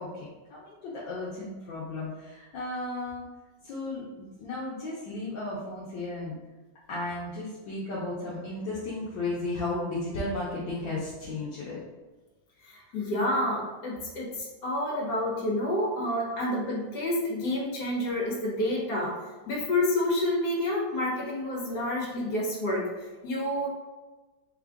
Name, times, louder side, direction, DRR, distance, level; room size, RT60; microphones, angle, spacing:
voice 1, 0.0-3.2 3.6-6.4 6.9-11.8 12.9-13.0 16.3-16.4, left 2 dB, 70° left, -7 dB, 1.4 m, -34 dB
voice 2, 12.6-19.2 19.5-23.7, left 1 dB, 55° left, -4 dB, 1.6 m, -29 dB
4.4 x 2.4 x 3.5 m, 1.2 s
omnidirectional pair, 2.2 m